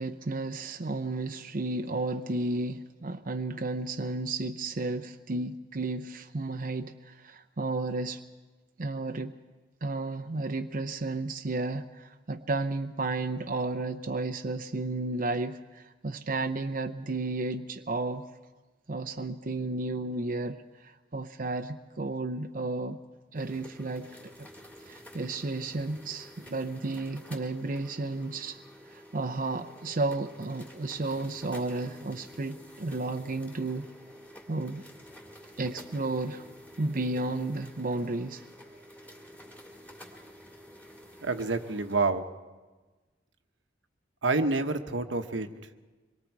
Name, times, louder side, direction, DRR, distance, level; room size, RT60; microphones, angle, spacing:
voice 1, 0.0-8.2 8.8-9.3 9.8-18.3 18.9-23.0 23.3-24.5 24.8-28.6 28.9-33.9 34.5-34.8 35.6-36.4 36.8-38.4, right 2 dB, 45° right, 6 dB, 0.7 m, -33 dB
sound 1, 23.3-42.0, equal, 10° left, 2.6 m, -50 dB
voice 2, 41.2-42.2 44.2-45.7, right 3 dB, 85° right, 7 dB, 1.1 m, -28 dB
25.5 x 22.5 x 4.7 m, 1.3 s
head